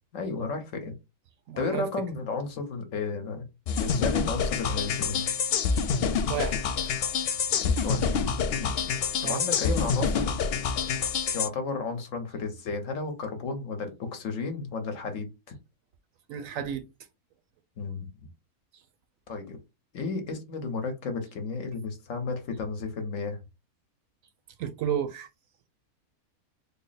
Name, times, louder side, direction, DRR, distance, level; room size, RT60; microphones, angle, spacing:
voice 1, 0.1-0.9 1.6-3.5 3.8-5.2 7.6-8.1 8.6-8.9 9.2-10.4 11.3-15.5 17.8-18.1 19.3-19.6 19.9-23.4, left 4 dB, 60° left, 1.2 m, -33 dB
voice 2, 1.5-1.9 6.3-6.6 9.2-9.4 16.3-16.8 24.6-25.3, right 8 dB, 70° right, 0.9 m, -31 dB
sound 1, 3.7-11.5, left 6 dB, 90° left, 0.5 m, -27 dB
3.6 x 2.0 x 3.9 m
omnidirectional pair, 1.6 m